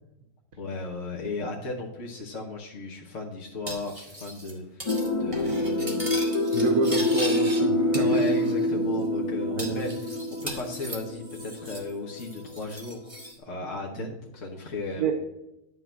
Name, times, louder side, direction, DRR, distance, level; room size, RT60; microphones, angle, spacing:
voice 1, 0.6-6.1 8.0-13.1 13.4-15.1, left 2 dB, 55° left, -2 dB, 1.6 m, -35 dB
Cutlery silverware, 3.7-4.5 4.8-5.1 5.3-7.6 7.9-8.6 8.9-9.0 9.6-11.9 12.2-13.3, right 1 dB, 20° right, 2.0 m, -38 dB
sound 1, 4.9-12.6 12.9-13.0, left 1 dB, 40° left, 0.5 m, -27 dB
voice 2, 6.5-8.2 8.7-8.9 9.6-9.8 13.9-14.1 15.0-15.1, right 6 dB, 80° right, 4 dB, 1.5 m, -28 dB
11.0 x 3.8 x 7.4 m, 0.92 s
omnidirectional pair, 1.6 m